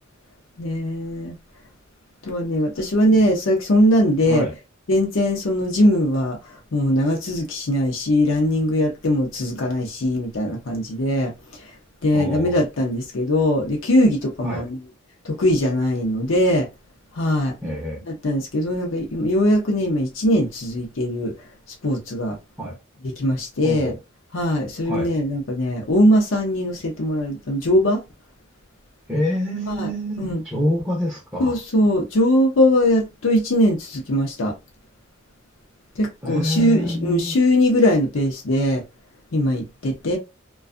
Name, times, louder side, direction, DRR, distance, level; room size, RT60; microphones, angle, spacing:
voice 1, 0.6-1.3 2.2-4.5 4.9-6.4 6.7-11.3 12.0-14.8 15.2-16.7 17.1-17.5 18.1-21.3 21.8-22.4 23.0-23.9 24.3-28.0 29.7-29.9 30.2-30.4 31.4-34.5 36.0-38.8 39.3-40.2, left 1 dB, 70° left, 0.6 m, -20 dB
voice 2, 4.2-4.5 12.1-12.7 14.4-14.6 17.6-18.0 22.6-22.8 23.6-24.0 24.9-25.1 29.1-31.6 36.2-37.4, equal, 5° right, 0.6 m, -26 dB
2.5 x 2.3 x 2.4 m
head